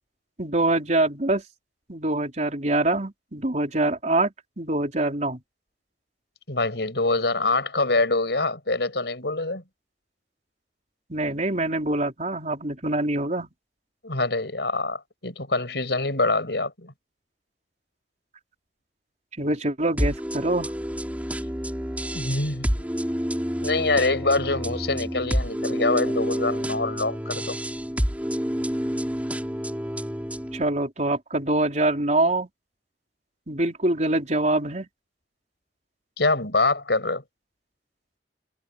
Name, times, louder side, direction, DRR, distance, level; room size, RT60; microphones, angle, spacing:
voice 1, 0.4-1.4 1.9-5.4 11.1-13.5 19.4-20.7 30.5-32.5 33.5-34.9, right 2 dB, 40° right, 4.2 m, -24 dB
voice 2, 6.5-9.6 14.0-16.9 22.1-22.9 23.6-27.6 36.2-37.2, left 3 dB, 75° left, 6.1 m, -25 dB
sound 1, 20.0-30.6, equal, 10° right, 5.6 m, -29 dB
head